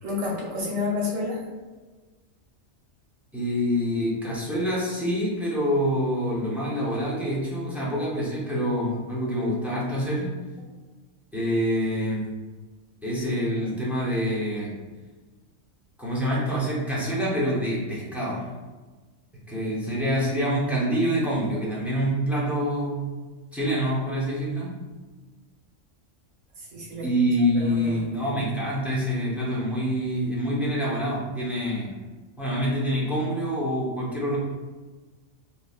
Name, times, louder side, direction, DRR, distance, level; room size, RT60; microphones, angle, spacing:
voice 1, 0.0-1.4 26.6-27.1 27.4-28.4, left 3 dB, 80° right, -3 dB, 1.3 m, -31 dB
voice 2, 3.3-10.4 11.3-12.3 13.0-14.7 16.0-18.5 19.5-23.0 23.5-24.8 27.0-31.9 32.4-34.4, equal, ahead, -7 dB, 0.6 m, -26 dB
5.4 x 2.0 x 2.4 m, 1.3 s
omnidirectional pair, 1.4 m